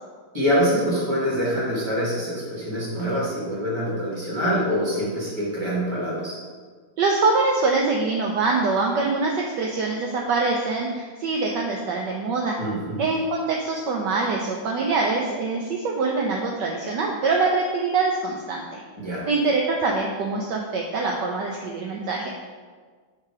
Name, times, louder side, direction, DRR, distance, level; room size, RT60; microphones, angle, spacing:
voice 1, 0.3-6.4 12.6-13.0 19.0-19.2, equal, 15° right, -6 dB, 1.4 m, -25 dB
voice 2, 7.0-12.6 13.0-18.8 19.3-22.3, right 3 dB, 75° right, 0 dB, 1.1 m, -24 dB
7.6 x 2.9 x 4.7 m, 1.5 s
omnidirectional pair, 2.3 m